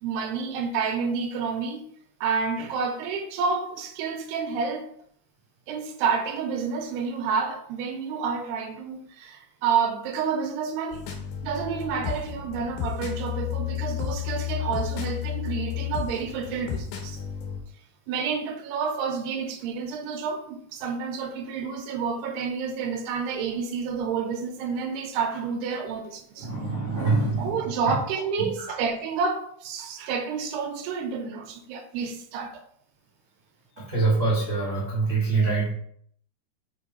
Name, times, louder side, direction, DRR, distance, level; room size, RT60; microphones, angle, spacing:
voice 1, 0.0-1.8 2.2-4.9 5.7-11.0 11.4-17.2 18.1-26.5 27.4-32.5, right 5 dB, 90° right, 3.0 m, -29 dB
sound 1, 10.9-17.6, left 10 dB, 80° left, 3.2 m, -32 dB
voice 2, 26.4-27.6 27.8-28.0 28.4-28.7 33.8-35.7, right 3 dB, 30° right, 1.5 m, -25 dB
6.5 x 5.9 x 4.1 m
omnidirectional pair, 4.6 m